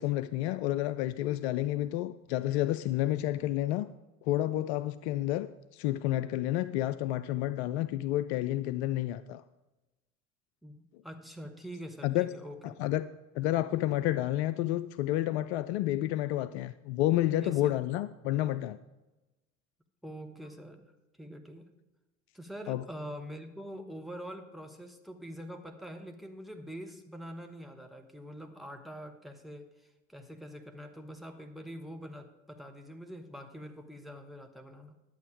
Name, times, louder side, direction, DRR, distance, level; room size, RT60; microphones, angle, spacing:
voice 1, 0.0-3.9 4.2-9.4 12.0-12.3 12.6-13.1 13.4-18.8 22.7-22.8, left 14 dB, 55° left, 0.5 m, -30 dB
voice 2, 10.6-12.8 17.4-17.8 20.0-20.9 21.2-21.7 22.3-35.0, equal, ahead, 1.1 m, -45 dB
11.0 x 7.8 x 5.0 m
figure-of-eight pair, 60°, 41 cm